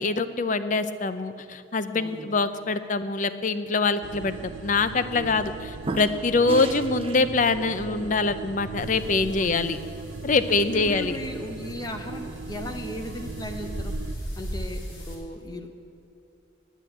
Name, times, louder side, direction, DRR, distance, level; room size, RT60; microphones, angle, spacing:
voice 1, 0.0-9.8 10.2-11.2, left 3 dB, 40° left, 12 dB, 0.5 m, -24 dB
voice 2, 1.9-2.3 9.4-9.7 10.5-15.7, left 1 dB, 20° left, 5 dB, 0.8 m, -37 dB
sound 1, 4.0-14.2, right 4 dB, 70° right, 0.4 m, -38 dB
sound 2, 4.3-4.6 5.1-5.5 5.8-7.2, right 2 dB, 30° right, 0.6 m, -34 dB
sound 3, 8.8-15.1, right 1 dB, 75° left, 2.9 m, -38 dB
9.9 x 9.1 x 7.9 m, 2.8 s
head